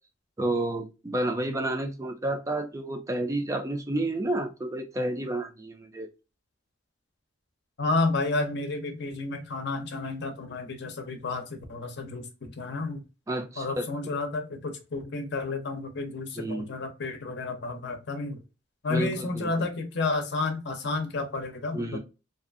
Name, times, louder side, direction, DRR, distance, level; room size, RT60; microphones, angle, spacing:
voice 1, 0.4-6.1 13.3-14.1 16.3-16.7 18.9-19.7 21.7-22.0, right 1 dB, 15° right, 0.4 m, -30 dB
voice 2, 7.8-13.0 13.6-18.4 18.8-22.0, left 3 dB, 60° left, 0.6 m, -31 dB
2.6 x 2.4 x 2.4 m
head